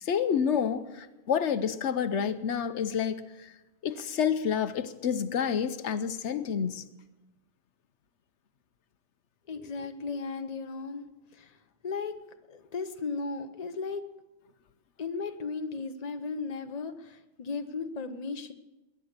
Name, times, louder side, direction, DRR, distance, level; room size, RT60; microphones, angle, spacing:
voice 1, 0.0-3.5 3.8-6.9, left 7 dB, 85° left, 1.1 m, -29 dB
voice 2, 9.5-11.1 11.3-12.1 12.5-14.0 15.0-18.5, left 4 dB, 35° left, 1.0 m, -36 dB
21.5 x 9.8 x 6.7 m
omnidirectional pair, 1.2 m